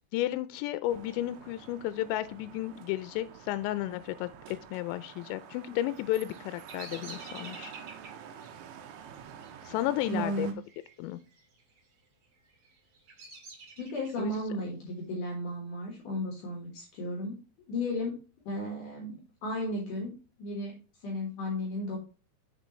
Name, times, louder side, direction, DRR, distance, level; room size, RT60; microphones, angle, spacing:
voice 1, 0.1-7.7 9.6-10.5 11.0-11.2 14.2-14.3, left 14 dB, 85° left, 13 dB, 2.8 m, -33 dB
sound 1, 0.9-10.5, right 8 dB, 85° right, 3.0 m, -49 dB
Bird vocalization bird call bird song, 5.9-10.9 11.2-11.8 12.4-14.4, right 3 dB, 50° right, 2.0 m, -49 dB
voice 2, 10.1-10.5 13.8-17.4 17.7-18.2 18.5-20.7 21.0-22.0, left 1 dB, 60° left, -1 dB, 2.5 m, -34 dB
6.7 x 6.7 x 3.1 m, 0.33 s
omnidirectional pair, 5.2 m